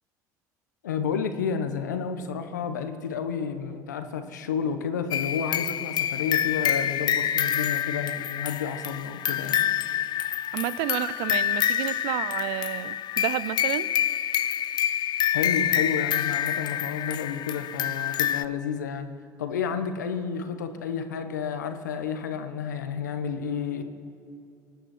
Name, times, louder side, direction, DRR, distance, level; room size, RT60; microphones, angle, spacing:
voice 1, 0.8-9.7 15.3-19.1 19.4-23.8, left 7 dB, 90° left, 9 dB, 1.0 m, -31 dB
sound 1, 5.1-18.4, left 10 dB, 50° left, 0.5 m, -27 dB
voice 2, 10.5-13.9, right 15 dB, 70° right, 18 dB, 0.5 m, -30 dB
24.0 x 9.4 x 6.0 m, 2.7 s
hypercardioid pair, 65°, 9 cm